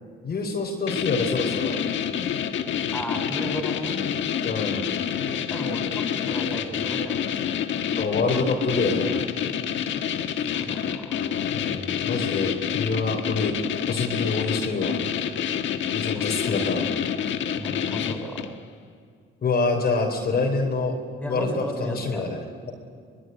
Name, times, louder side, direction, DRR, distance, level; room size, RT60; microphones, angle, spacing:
voice 1, 0.2-1.8 4.4-4.9 8.0-9.3 11.5-13.5 13.9-15.0 15.9-16.8 19.4-20.9 21.3-22.7, left 3 dB, 50° left, 1 dB, 3.9 m, -26 dB
sound 1, 0.9-18.6, left 8 dB, 70° left, 1.5 m, -28 dB
voice 2, 2.9-4.0 5.5-7.4 10.5-11.5 16.1-16.6 17.5-18.6 21.2-22.3, equal, 5° left, 3 dB, 7.0 m, -35 dB
23.5 x 21.5 x 9.5 m, 2.2 s
cardioid pair, 90°, 20 cm